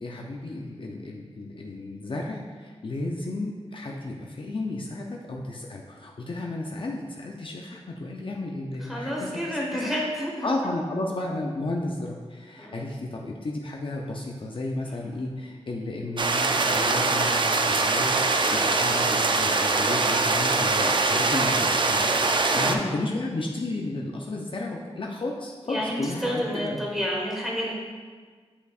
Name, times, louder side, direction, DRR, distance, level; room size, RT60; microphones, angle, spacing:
voice 1, 0.0-9.8 10.4-22.1 22.5-26.8, left 2 dB, 50° left, -1 dB, 0.6 m, -33 dB
voice 2, 8.8-10.7 12.6-12.8 22.5-22.9 25.7-27.7, equal, ahead, -4 dB, 1.5 m, -30 dB
sound 1, 16.2-22.7, right 3 dB, 45° right, 0.5 m, -23 dB
8.3 x 5.4 x 2.4 m, 1.5 s
wide cardioid pair, 85°, 11 cm